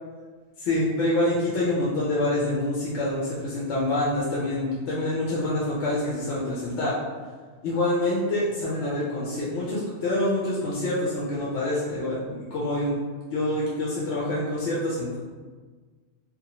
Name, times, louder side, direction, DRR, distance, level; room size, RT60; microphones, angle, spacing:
voice 1, 0.6-7.0 7.6-12.2 12.5-13.0 13.3-15.2, left 1 dB, 85° left, -7 dB, 0.9 m, -26 dB
2.6 x 2.1 x 2.8 m, 1.5 s
omnidirectional pair, 1.2 m